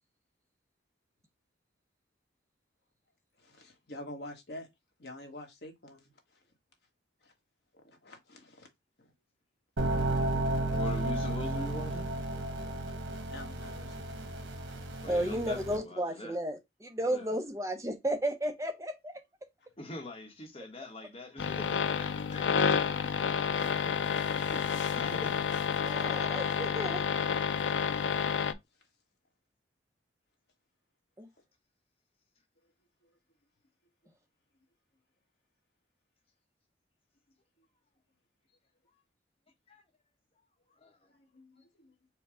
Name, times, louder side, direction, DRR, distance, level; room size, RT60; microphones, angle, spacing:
voice 1, 3.4-4.7 5.0-6.1 7.2-7.3 8.0-8.7 9.0-9.1 13.3-13.9 24.5-24.6 28.4-28.5 41.1-41.9, left 1 dB, 60° left, 1.3 m, -47 dB
sound 1, 9.8-15.8, right 1 dB, 90° right, 1.1 m, -33 dB
voice 2, 10.7-12.1 15.0-16.4 17.0-17.4 19.8-24.1 24.9-25.4 39.7-39.8 40.7-41.0, left 2 dB, 30° left, 1.1 m, -43 dB
voice 3, 15.1-19.1 25.8-27.2 31.2-31.3, right 1 dB, 15° right, 0.7 m, -33 dB
sound 2, 21.4-28.5, left 6 dB, 80° left, 0.4 m, -30 dB
4.7 x 2.3 x 4.8 m
head